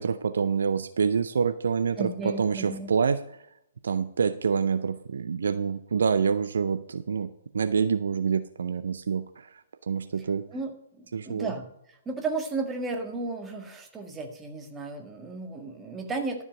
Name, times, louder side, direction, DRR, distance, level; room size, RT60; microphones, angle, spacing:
voice 1, 0.0-3.4 3.8-7.3 7.5-10.4 11.1-11.5, right 6 dB, 65° right, 12 dB, 0.5 m, -27 dB
voice 2, 2.0-2.9 10.5-11.7 12.1-16.4, right 3 dB, 15° right, 4 dB, 1.7 m, -34 dB
12.0 x 7.2 x 5.3 m, 0.78 s
figure-of-eight pair, 120°, 0 cm